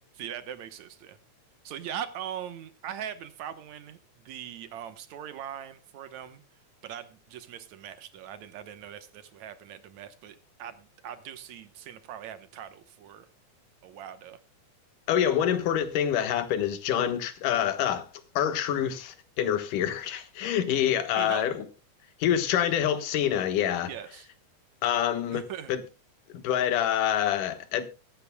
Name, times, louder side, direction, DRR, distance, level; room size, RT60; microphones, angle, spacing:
voice 1, 0.1-1.2 1.6-6.4 6.8-13.3 13.8-14.4 21.2-21.5 23.9-24.3 25.3-25.8, right 9 dB, 70° right, 2.2 m, -41 dB
voice 2, 15.1-18.1 18.4-21.6 22.2-23.9 24.8-25.4 25.7-25.8 26.3-27.9, left 10 dB, 80° left, 2.9 m, -26 dB
23.0 x 10.5 x 2.2 m
omnidirectional pair, 3.6 m